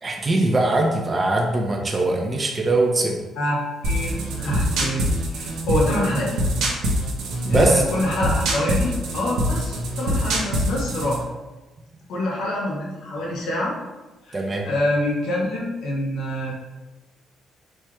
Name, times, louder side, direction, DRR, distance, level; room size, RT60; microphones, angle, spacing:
voice 1, 0.0-3.2 7.4-7.8 14.3-14.7, right 2 dB, 30° right, 0 dB, 0.5 m, -21 dB
voice 2, 3.4-6.3 7.5-11.2 12.1-13.7 14.2-16.5, left 1 dB, 85° left, -3 dB, 1.0 m, -26 dB
sound 1, 3.8-11.2, right 1 dB, 85° right, 0.6 m, -24 dB
4.3 x 3.0 x 2.3 m, 1.1 s
cardioid pair, 90°, 0 cm